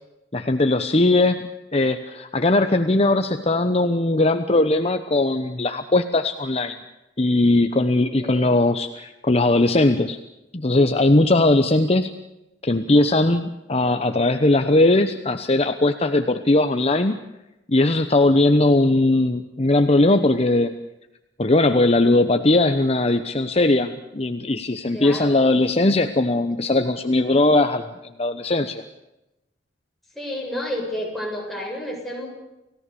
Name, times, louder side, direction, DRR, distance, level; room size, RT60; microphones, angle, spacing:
voice 1, 0.3-6.8 7.2-10.2 10.5-12.1 12.6-17.2 17.7-20.7 21.4-27.9 28.2-28.8, left 2 dB, 35° left, 8 dB, 1.0 m, -19 dB
voice 2, 8.2-8.6 24.9-25.4 30.1-32.3, left 1 dB, ahead, -2 dB, 7.6 m, -30 dB
30.0 x 17.0 x 7.0 m, 0.96 s
head